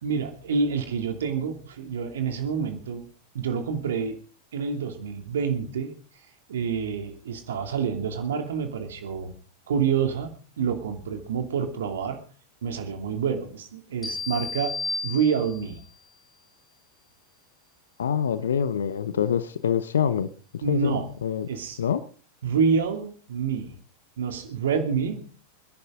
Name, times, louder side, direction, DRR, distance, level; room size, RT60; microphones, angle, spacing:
voice 1, 0.0-3.1 3.3-4.2 4.5-5.9 6.5-9.3 9.7-12.2 12.6-14.8 15.0-15.8 20.6-21.1 21.5-21.8 22.4-23.7 24.2-25.3, right 6 dB, 60° right, 6 dB, 2.7 m, -27 dB
sound 1, 14.0-15.8, left 3 dB, 10° left, 6.7 m, -33 dB
voice 2, 18.0-20.3 20.5-20.9 21.2-21.5 21.8-22.0, left 8 dB, 65° left, 15 dB, 0.8 m, -25 dB
27.5 x 11.0 x 3.8 m, 0.41 s
figure-of-eight pair, 90°, 0 cm